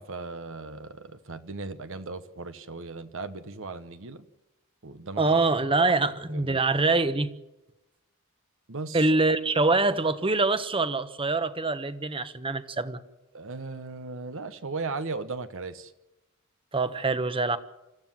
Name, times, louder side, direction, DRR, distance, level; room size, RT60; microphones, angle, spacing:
voice 1, 0.0-4.2 4.8-5.2 6.3-6.6 8.7-9.1 13.3-15.9, right 3 dB, 65° right, 11 dB, 1.1 m, -37 dB
voice 2, 5.2-7.3 8.9-13.0 16.7-17.6, right 3 dB, 25° right, 12 dB, 1.1 m, -24 dB
27.0 x 14.5 x 7.6 m, 0.96 s
head